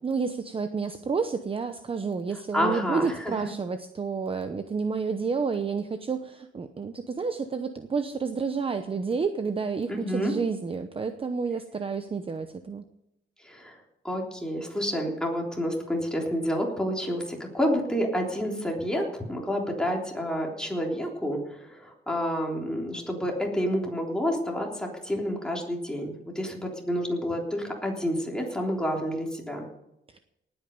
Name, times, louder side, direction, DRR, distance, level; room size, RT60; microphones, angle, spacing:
voice 1, 0.0-12.8 30.1-30.2, right 5 dB, 30° right, 8 dB, 0.8 m, -30 dB
voice 2, 2.5-3.3 9.9-10.3 13.4-13.8 14.0-29.7, equal, 5° left, -1 dB, 3.5 m, -29 dB
19.0 x 8.9 x 5.4 m, 0.86 s
cardioid pair, 135°, 20 cm